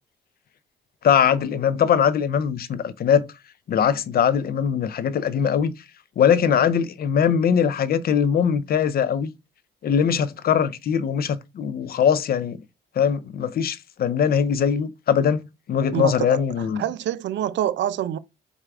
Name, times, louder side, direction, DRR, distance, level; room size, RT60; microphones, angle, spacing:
voice 1, 1.0-3.3 3.7-5.7 6.2-9.3 9.8-12.6 13.0-15.4 15.7-16.8, left 8 dB, 50° left, 0.4 m, -21 dB
voice 2, 15.9-16.4 16.8-18.2, right 11 dB, 65° right, 0.4 m, -26 dB
4.6 x 2.4 x 3.4 m
cardioid pair, 90°, 20 cm